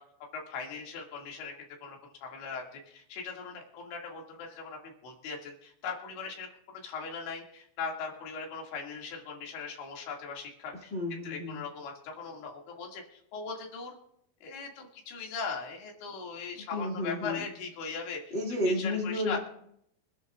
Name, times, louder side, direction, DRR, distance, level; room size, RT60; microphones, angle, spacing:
voice 1, 0.3-1.5 1.8-6.5 6.8-10.9 11.2-14.0 14.4-18.2 18.6-19.4, left 5 dB, 85° left, 0 dB, 4.6 m, -39 dB
voice 2, 10.9-11.6 16.5-17.5 18.3-19.4, left 1 dB, 25° left, 0 dB, 1.6 m, -32 dB
25.0 x 11.0 x 2.4 m, 0.72 s
omnidirectional pair, 5.1 m